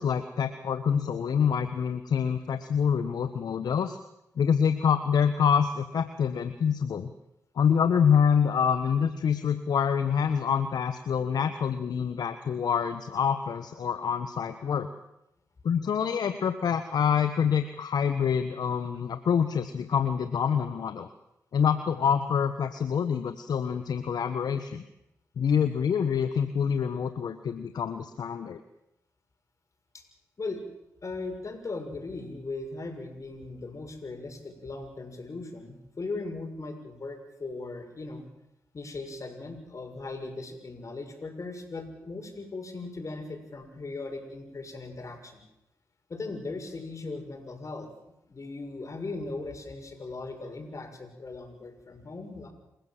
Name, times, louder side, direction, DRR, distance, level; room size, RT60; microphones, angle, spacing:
voice 1, 0.0-4.0 4.4-7.1 7.5-14.9 15.6-21.1 21.5-24.8 25.4-28.6, left 7 dB, 65° left, 9 dB, 1.4 m, -26 dB
voice 2, 31.0-38.3 38.7-45.4 46.1-47.9 48.3-52.5, left 3 dB, 45° left, 5 dB, 6.7 m, -38 dB
28.5 x 16.0 x 7.7 m, 0.83 s
hypercardioid pair, 40°, 7 cm